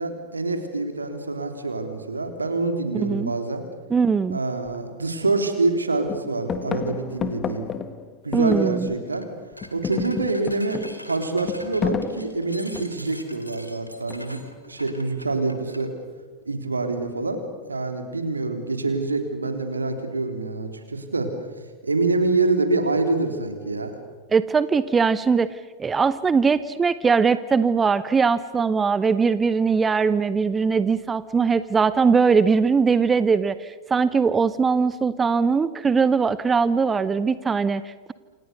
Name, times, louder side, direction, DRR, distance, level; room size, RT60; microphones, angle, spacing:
voice 1, 0.0-3.6 4.3-7.7 8.2-9.3 9.7-14.4 14.7-15.9 16.4-17.4 17.7-21.3 21.8-23.9, right 3 dB, 80° right, 6 dB, 3.4 m, -26 dB
voice 2, 2.9-3.3 3.9-4.4 8.3-8.9 24.3-38.1, right 5 dB, 15° right, 16 dB, 0.7 m, -21 dB
sound 1, 4.7-4.8 5.2-5.8 6.1-9.2 9.5-13.1 14.1-14.6, left 7 dB, 25° left, 1.8 m, -32 dB
sound 2, 9.0-9.3 9.6-15.9, equal, 90° left, 2.2 m, -43 dB
28.0 x 27.5 x 6.9 m, 1.4 s
figure-of-eight pair, 90°, 0 cm